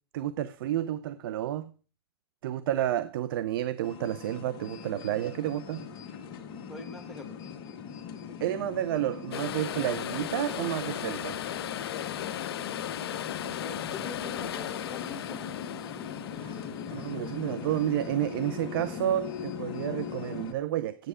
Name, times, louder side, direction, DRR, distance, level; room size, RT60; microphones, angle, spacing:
voice 1, 0.1-1.7 2.4-5.9 8.4-11.4 16.4-16.6 16.9-21.1, right 12 dB, 60° right, 0.6 m, -30 dB
sound 1, 3.8-20.5, left 7 dB, 40° left, 1.6 m, -40 dB
voice 2, 6.7-7.4 13.6-15.5, left 4 dB, ahead, 1.9 m, -43 dB
sound 2, 9.3-19.6 19.9-20.0, left 11 dB, 75° left, 0.5 m, -37 dB
9.2 x 8.0 x 4.9 m
hypercardioid pair, 130°, 13 cm